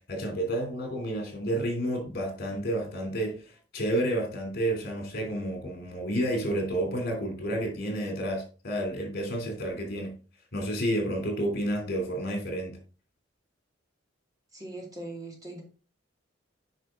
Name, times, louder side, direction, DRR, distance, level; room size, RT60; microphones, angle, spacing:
voice 1, 0.1-10.1 10.5-12.7, right 1 dB, 55° left, 3.1 m, -30 dB
voice 2, 14.5-15.6, right 2 dB, 20° right, 2.3 m, -40 dB
9.1 x 5.5 x 3.7 m
head